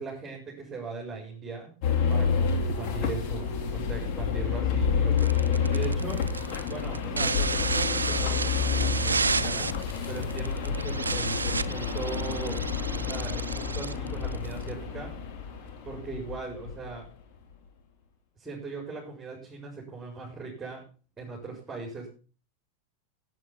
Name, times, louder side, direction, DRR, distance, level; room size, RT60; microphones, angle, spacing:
voice 1, 0.0-1.7 2.1-6.3 6.7-9.7 10.1-12.6 12.9-15.2 15.8-17.1 18.4-20.9 21.2-22.1, right 4 dB, 15° right, -2 dB, 5.2 m, -39 dB
sound 1, 1.8-17.0, left 6 dB, 50° left, 2.9 m, -29 dB
sound 2, 5.2-14.7, right 4 dB, 85° right, 0.6 m, -31 dB
15.5 x 8.4 x 5.8 m, 0.38 s
figure-of-eight pair, 90°, 0 cm